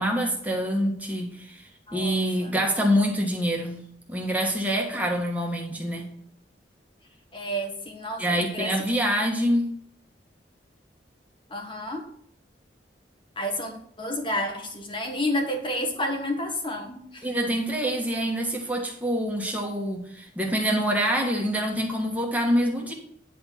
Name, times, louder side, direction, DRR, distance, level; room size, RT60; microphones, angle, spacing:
voice 1, 0.0-6.2 8.2-9.7 17.2-22.9, equal, 10° right, 1 dB, 1.6 m, -26 dB
voice 2, 1.9-2.5 7.3-9.0 11.5-12.1 13.3-17.3, left 1 dB, 30° left, 3 dB, 1.7 m, -30 dB
9.9 x 4.4 x 5.9 m, 0.66 s
head